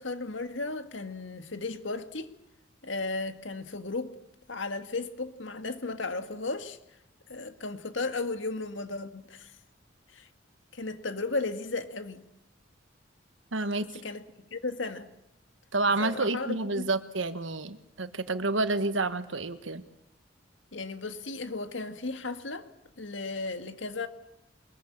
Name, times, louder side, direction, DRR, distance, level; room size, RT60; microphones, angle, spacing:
voice 1, 0.0-2.3 2.8-4.2 4.5-6.8 7.3-9.5 10.1-10.3 10.7-12.2 14.0-14.2 14.5-15.1 16.0-16.9 20.7-22.7 23.0-24.1, left 3 dB, 70° left, 1.8 m, -35 dB
voice 2, 13.5-13.9 15.7-19.8, right 3 dB, 75° right, 1.6 m, -29 dB
23.0 x 21.5 x 8.7 m
head